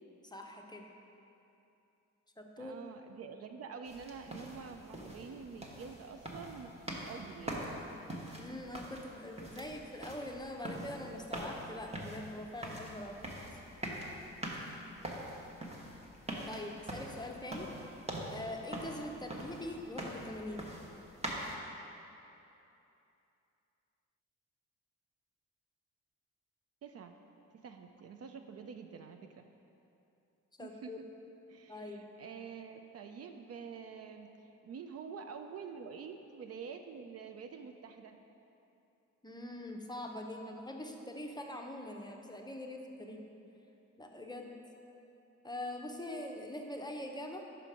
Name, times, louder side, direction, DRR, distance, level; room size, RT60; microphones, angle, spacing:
voice 1, 0.2-0.8 2.4-2.8 8.3-13.2 13.5-13.6 16.5-17.7 18.3-20.7 30.6-31.0 31.7-32.1 39.2-43.2 44.0-44.5 45.4-47.5, left 1 dB, 15° left, 2 dB, 0.6 m, -43 dB
voice 2, 2.6-7.7 26.8-27.2 27.5-29.5 30.6-30.9 31.5-38.2 43.0-43.2, right 6 dB, 50° right, 6 dB, 0.4 m, -47 dB
sound 1, 3.8-21.5, right 1 dB, 20° right, 1.1 m, -44 dB
5.7 x 5.1 x 4.9 m, 2.8 s
cardioid pair, 65°, 31 cm